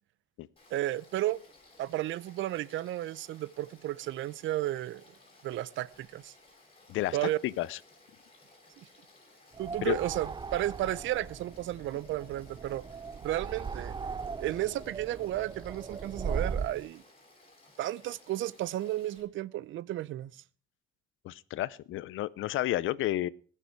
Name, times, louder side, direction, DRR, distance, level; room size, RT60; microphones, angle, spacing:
Frog / Stream, 0.6-19.2, left 2 dB, 30° left, 6.3 m, -59 dB
voice 1, 0.7-1.4 1.8-5.0 5.4-6.3 7.1-7.4 9.6-12.8 13.2-14.0 14.4-17.0 17.8-20.4, right 14 dB, 80° right, 0.6 m, -33 dB
voice 2, 6.9-7.8 9.8-10.0 21.2-23.3, left 15 dB, 80° left, 0.6 m, -31 dB
sound 1, 9.5-16.8, right 5 dB, 25° right, 0.5 m, -38 dB
20.0 x 6.7 x 4.6 m
cardioid pair, 90°, 20 cm